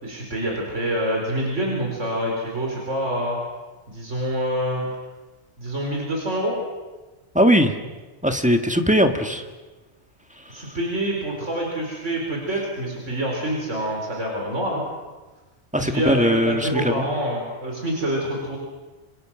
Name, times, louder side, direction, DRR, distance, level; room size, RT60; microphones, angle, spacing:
voice 1, 0.0-3.4 3.9-4.9 5.6-6.6 10.5-14.8 15.8-18.6, right 1 dB, 90° right, -1 dB, 4.9 m, -26 dB
voice 2, 7.3-7.8 8.2-9.4 10.4-10.8 15.7-17.0, equal, 5° right, 6 dB, 1.6 m, -20 dB
26.5 x 25.5 x 6.3 m, 1.2 s
omnidirectional pair, 1.2 m